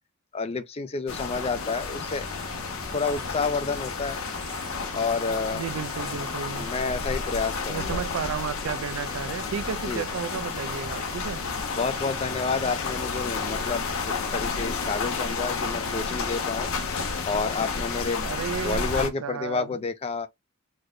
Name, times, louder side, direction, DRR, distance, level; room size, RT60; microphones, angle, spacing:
voice 1, 0.3-2.4 2.9-4.2 4.9-5.6 6.6-8.0 9.9-10.0 11.7-16.7 17.3-18.3 18.6-20.3, left 4 dB, 30° left, 0.4 m, -29 dB
sound 1, 1.1-19.1, left 4 dB, 85° left, 0.7 m, -31 dB
sound 2, 1.8-13.9, right 3 dB, 25° right, 0.6 m, -46 dB
voice 2, 5.5-6.7 7.7-11.4 18.2-19.8, right 7 dB, 75° right, 0.4 m, -33 dB
sound 3, 13.2-17.5, left 4 dB, 45° left, 1.0 m, -49 dB
3.2 x 2.2 x 3.7 m
head